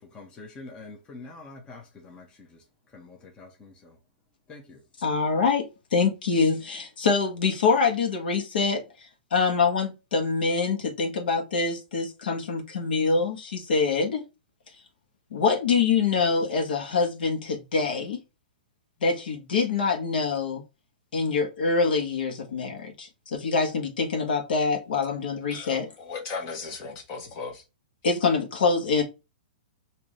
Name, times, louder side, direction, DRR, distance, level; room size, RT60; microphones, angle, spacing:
voice 1, 0.0-4.0 4.5-4.8, left 3 dB, 15° left, 0.9 m, -46 dB
voice 2, 5.0-8.9 9.3-14.2 15.3-18.2 19.0-20.6 21.1-25.9 28.0-29.0, left 4 dB, 75° left, 1.2 m, -25 dB
voice 3, 26.1-27.6, left 4 dB, 35° left, 1.2 m, -36 dB
3.8 x 2.8 x 3.0 m
hypercardioid pair, 145°, 5 cm